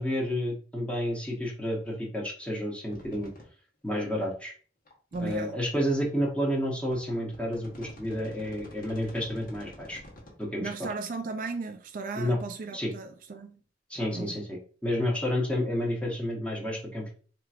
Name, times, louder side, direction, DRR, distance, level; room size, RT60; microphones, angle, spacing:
voice 1, 0.0-3.3 3.8-4.5 5.2-10.0 10.4-10.9 12.1-12.4 12.7-12.9 13.9-17.2, equal, 5° left, 1.0 m, -30 dB
sound 1, 2.9-3.4 4.0-4.1 4.9-5.5 6.3-6.4 6.9-10.4, left 1 dB, 50° left, 1.2 m, -47 dB
voice 2, 5.1-5.6 10.6-13.6 14.1-14.4, right 4 dB, 50° right, 0.4 m, -36 dB
4.4 x 2.9 x 2.4 m
head